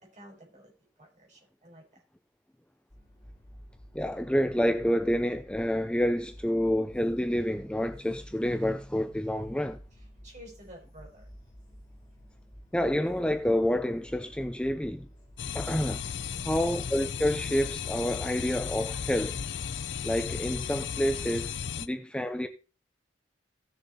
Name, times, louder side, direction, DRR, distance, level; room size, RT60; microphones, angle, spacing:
voice 1, 0.0-2.0 9.9-11.3 16.2-16.6, equal, 40° right, 5.1 m, -52 dB
sound 1, 2.9-17.5, equal, 25° left, 4.9 m, -51 dB
voice 2, 3.9-9.8 12.7-15.1 15.5-16.0 16.4-19.4 20.0-22.5, equal, 5° left, 0.5 m, -28 dB
sound 2, 15.4-21.9, left 7 dB, 65° left, 0.5 m, -35 dB
15.5 x 6.7 x 4.1 m
head